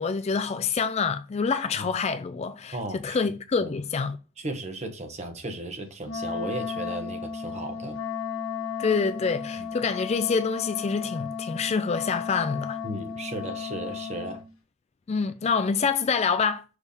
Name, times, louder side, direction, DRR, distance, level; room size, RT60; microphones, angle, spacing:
voice 1, 0.0-4.2 8.8-12.8 15.1-16.6, left 5 dB, 30° left, 0.3 m, -26 dB
voice 2, 2.7-3.2 3.6-3.7 4.4-8.0 9.6-9.7 12.8-14.4, right 1 dB, 35° right, 1.2 m, -35 dB
Wind instrument woodwind instrument, 6.0-14.5, left 6 dB, 85° left, 1.4 m, -34 dB
6.3 x 3.4 x 5.3 m
head